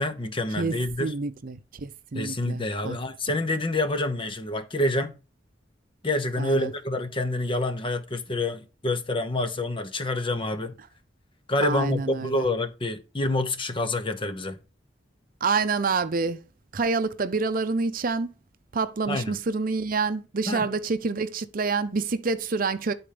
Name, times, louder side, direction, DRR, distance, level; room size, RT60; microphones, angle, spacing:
voice 1, 0.0-1.1 2.1-5.1 6.0-10.8 11.5-14.6 19.1-19.4 20.5-20.7, left 1 dB, 30° left, 0.9 m, -27 dB
voice 2, 0.6-3.0 6.4-6.7 11.6-12.4 15.4-16.4 16.7-18.3 18.7-22.9, right 4 dB, 50° right, 0.6 m, -27 dB
10.5 x 4.4 x 5.0 m
head